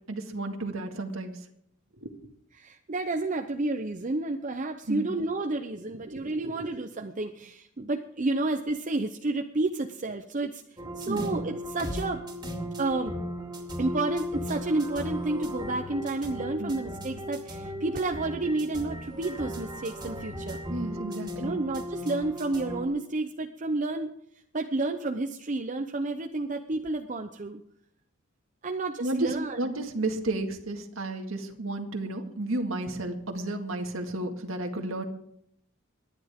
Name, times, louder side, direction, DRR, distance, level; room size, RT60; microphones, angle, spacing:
voice 1, 0.1-1.3 2.0-2.1 4.9-5.1 6.1-6.5 10.9-11.3 16.6-16.7 20.7-21.6 29.0-35.0, right 2 dB, 85° right, 3 dB, 2.0 m, -32 dB
voice 2, 2.6-10.6 11.0-12.2 12.8-13.1 13.8-20.6 21.4-24.1 24.5-27.6 28.6-29.6, right 2 dB, 40° right, 5 dB, 0.7 m, -30 dB
sound 1, 10.8-22.9, equal, 20° right, 2.4 m, -36 dB
24.5 x 10.5 x 3.6 m, 0.70 s
head